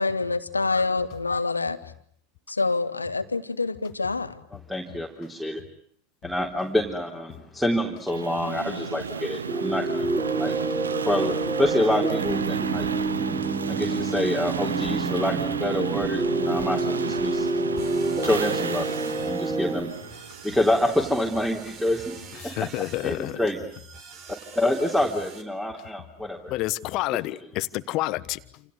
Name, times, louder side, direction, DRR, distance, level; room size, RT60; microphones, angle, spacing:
voice 1, 0.0-1.8 2.5-4.3, left 3 dB, 85° left, 1.7 m, -26 dB
voice 2, 4.7-5.6 6.2-10.1 10.4-10.6 11.0-12.9 13.7-17.5 18.2-18.9 19.2-19.9 20.4-22.5 23.0-23.6 24.3-26.5, left 1 dB, ahead, 3.6 m, -27 dB
sound 1, 8.1-21.0, right 6 dB, 75° right, 1.2 m, -33 dB
sound 2, 9.5-19.8, right 3 dB, 20° right, 5.4 m, -28 dB
sound 3, 17.8-25.4, right 6 dB, 45° right, 4.1 m, -45 dB
voice 3, 22.3-23.4 26.5-28.6, left 18 dB, 45° left, 1.2 m, -29 dB
28.5 x 28.0 x 6.7 m
figure-of-eight pair, 85°, 0 cm